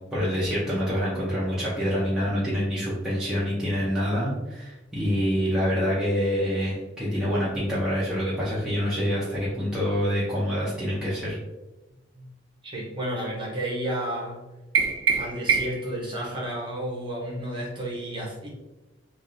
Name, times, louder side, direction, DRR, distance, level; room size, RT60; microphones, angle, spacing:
voice 1, 0.1-11.4, equal, 5° right, -10 dB, 0.6 m, -26 dB
voice 2, 12.6-14.4 15.2-18.5, right 1 dB, 25° right, -4 dB, 0.9 m, -32 dB
sound 1, 14.7-15.9, right 6 dB, 85° right, 0.6 m, -24 dB
3.4 x 2.5 x 2.6 m, 1.0 s
head